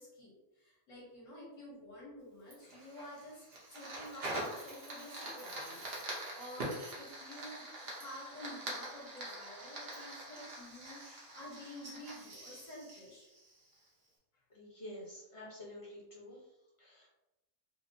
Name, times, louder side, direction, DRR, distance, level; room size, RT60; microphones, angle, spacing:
voice 1, 0.0-3.4 3.7-13.3, left 1 dB, 60° left, -5 dB, 1.4 m, -51 dB
Fire, 2.5-13.9, right 1 dB, 50° right, 1.0 m, -44 dB
voice 2, 14.5-16.4 16.8-17.1, left 1 dB, 25° left, -6 dB, 0.9 m, -49 dB
4.0 x 2.1 x 2.8 m, 0.97 s
omnidirectional pair, 1.5 m